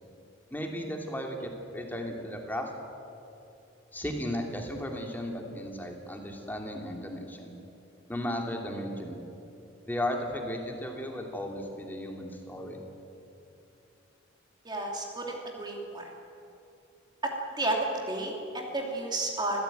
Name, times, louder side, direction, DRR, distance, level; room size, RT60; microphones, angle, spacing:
voice 1, 0.5-2.7 3.9-7.6 8.1-9.2 9.9-12.8, left 1 dB, 10° left, 2 dB, 2.7 m, -35 dB
voice 2, 14.6-16.1 17.2-17.3 17.6-19.6, right 2 dB, 20° right, 0 dB, 2.8 m, -32 dB
26.5 x 15.5 x 9.2 m, 2.8 s
head